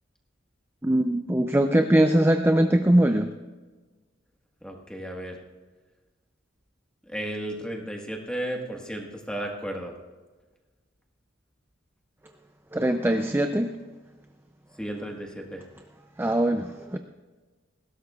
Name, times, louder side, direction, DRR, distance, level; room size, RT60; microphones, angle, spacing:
voice 1, 0.8-3.3 12.7-13.7 16.2-17.0, right 1 dB, 10° right, 6 dB, 0.4 m, -21 dB
voice 2, 4.6-5.4 7.1-9.9 14.8-15.6, right 1 dB, 5° left, 0 dB, 1.5 m, -34 dB
19.5 x 16.5 x 2.4 m, 1.3 s
head